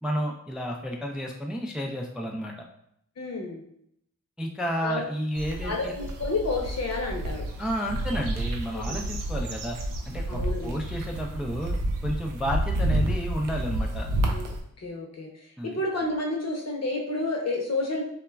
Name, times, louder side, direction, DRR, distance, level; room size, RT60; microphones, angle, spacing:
voice 1, 0.0-2.6 4.4-5.9 7.6-9.8 10.1-11.7 12.0-14.1 15.6-15.8, equal, 5° right, 0 dB, 0.3 m, -31 dB
voice 2, 3.2-3.6 4.8-5.0 5.6-7.5 8.7-9.0 10.3-10.8 14.3-14.5 14.8-18.0, left 2 dB, 55° left, 0 dB, 0.7 m, -30 dB
sound 1, 5.3-14.6, right 1 dB, 85° right, 0.5 m, -30 dB
2.9 x 2.2 x 2.2 m, 0.73 s
cardioid pair, 55°, 32 cm